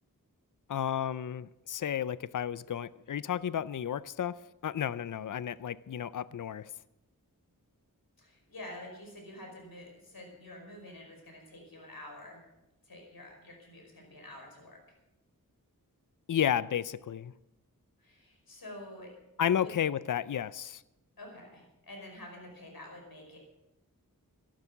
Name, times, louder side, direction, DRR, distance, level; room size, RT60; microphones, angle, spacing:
voice 1, 0.7-4.4 4.6-6.7 16.3-17.3 19.4-20.8, left 9 dB, 60° left, 18 dB, 0.5 m, -32 dB
voice 2, 8.2-12.4 12.8-14.8 18.0-19.1 19.5-19.7 21.2-23.4, left 1 dB, 80° left, 1 dB, 5.2 m, -48 dB
13.5 x 11.5 x 7.2 m, 0.93 s
wide cardioid pair, 65°, 35 cm